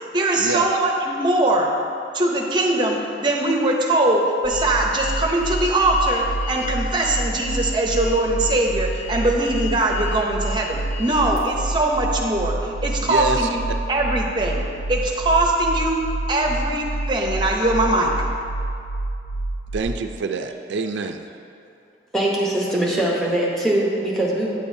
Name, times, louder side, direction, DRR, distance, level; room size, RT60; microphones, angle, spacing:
voice 1, 0.1-1.7 2.1-13.6 13.9-14.6 14.9-16.0 16.3-18.1, right 1 dB, 25° right, 0 dB, 0.6 m, -21 dB
sound 1, 4.4-19.8, right 2 dB, 65° left, 0.7 m, -28 dB
Alarm, 4.5-11.4, left 9 dB, 85° left, 1.7 m, -36 dB
voice 2, 13.0-13.5 19.7-21.2, right 5 dB, 90° right, 6 dB, 0.4 m, -26 dB
voice 3, 22.1-24.5, right 1 dB, 5° left, -4 dB, 0.9 m, -22 dB
9.1 x 6.8 x 2.7 m, 2.5 s
head